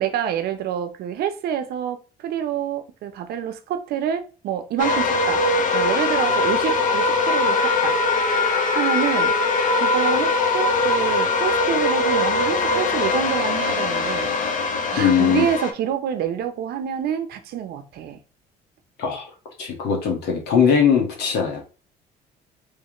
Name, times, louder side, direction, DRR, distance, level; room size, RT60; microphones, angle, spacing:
voice 1, 0.0-5.4 5.7-8.0 8.7-9.3 9.8-14.3 14.9-18.2, right 9 dB, 70° right, 0.7 m, -27 dB
sound 1, 4.8-15.7, left 3 dB, 50° left, 0.8 m, -21 dB
voice 2, 15.0-15.5 19.0-19.3 19.6-21.6, left 7 dB, 80° left, 1.5 m, -20 dB
3.5 x 3.3 x 2.9 m
cardioid pair, 110°, 17 cm